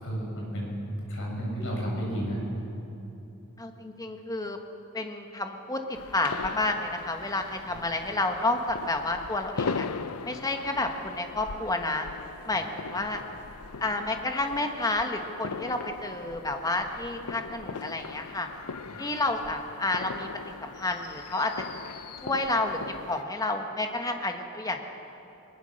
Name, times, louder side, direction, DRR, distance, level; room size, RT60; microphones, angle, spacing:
voice 1, 0.0-2.4 7.7-7.8 12.5-12.6 18.9-19.0, equal, 60° left, -2 dB, 6.5 m, -32 dB
voice 2, 3.6-4.6 4.9-9.9 10.2-12.1 12.5-13.2 13.8-18.5 19.0-20.3 20.6-21.5 22.2-22.8 23.1-24.8, left 2 dB, 15° left, 4 dB, 1.3 m, -30 dB
sound 1, 5.9-23.2, left 5 dB, 90° left, 0.6 m, -40 dB
20.5 x 20.0 x 6.5 m, 2.9 s
head